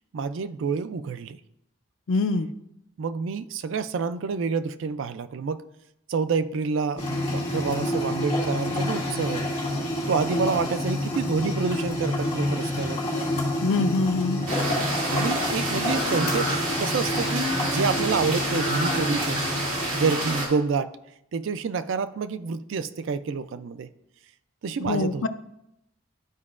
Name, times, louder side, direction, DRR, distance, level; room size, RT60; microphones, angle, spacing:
voice 1, 0.1-1.4 3.0-5.6 6.1-9.8 10.1-13.0 13.8-13.9 15.0-16.5 16.8-19.5 19.9-20.9 21.3-23.9 24.6-25.2, right 5 dB, 65° right, 13 dB, 0.3 m, -28 dB
voice 2, 2.1-2.5 13.6-14.5 24.9-25.3, left 3 dB, 70° left, 10 dB, 0.4 m, -24 dB
sound 1, 7.0-20.1, left 1 dB, 30° left, 2.1 m, -28 dB
sound 2, 14.5-20.5, right 1 dB, 80° right, 2.4 m, -28 dB
12.0 x 4.7 x 2.4 m, 0.83 s
head